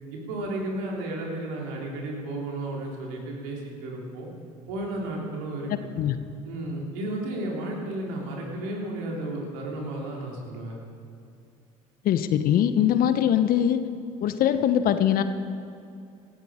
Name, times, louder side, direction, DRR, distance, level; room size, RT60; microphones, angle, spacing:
voice 1, 0.1-4.3 4.7-5.7 6.4-10.8, right 1 dB, 75° right, -1 dB, 3.5 m, -33 dB
voice 2, 12.0-13.8 14.2-15.2, left 10 dB, 55° left, 10 dB, 1.0 m, -22 dB
16.5 x 13.5 x 5.0 m, 2.5 s
hypercardioid pair, 70°, 17 cm